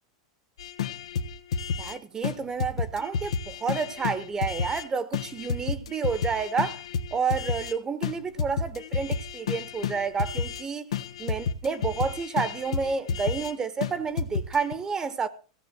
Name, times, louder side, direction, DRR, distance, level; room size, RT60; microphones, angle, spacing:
sound 1, 0.6-2.0 2.2-2.3 2.6-4.8 5.1-7.7 8.0-8.1 8.4-10.6 10.9-13.5 13.8-13.9 14.2-14.7, left 5 dB, 90° left, 1.3 m, -31 dB
voice 1, 1.8-6.8 7.1-10.9 11.2-15.3, right 5 dB, 20° right, 1.2 m, -30 dB
16.0 x 7.0 x 7.9 m
hypercardioid pair, 125°, 3 cm